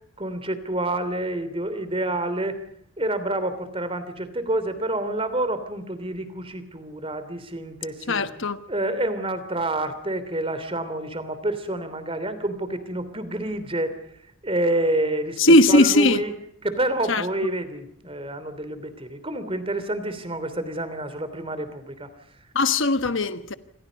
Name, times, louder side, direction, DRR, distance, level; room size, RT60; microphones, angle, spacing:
voice 1, 0.2-2.6 3.0-8.2 8.7-14.0 14.4-16.3 16.6-22.1 22.4-22.5, right 1 dB, 25° right, 3.1 m, -28 dB
voice 2, 8.1-8.6 15.4-16.2 17.1-17.2 22.5-23.6, left 2 dB, 55° left, 1.2 m, -18 dB
28.0 x 26.0 x 5.3 m
head